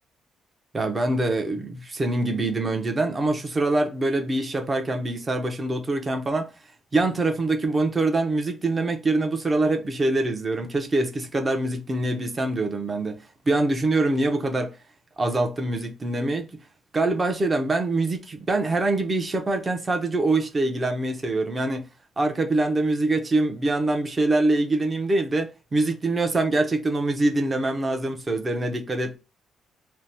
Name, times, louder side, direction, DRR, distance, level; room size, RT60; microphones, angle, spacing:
voice 1, 0.7-6.5 6.9-14.7 15.2-16.5 16.9-21.8 22.2-29.2, right 2 dB, 30° right, 0.6 m, -24 dB
2.8 x 2.1 x 3.3 m
cardioid pair, 90°, 0 cm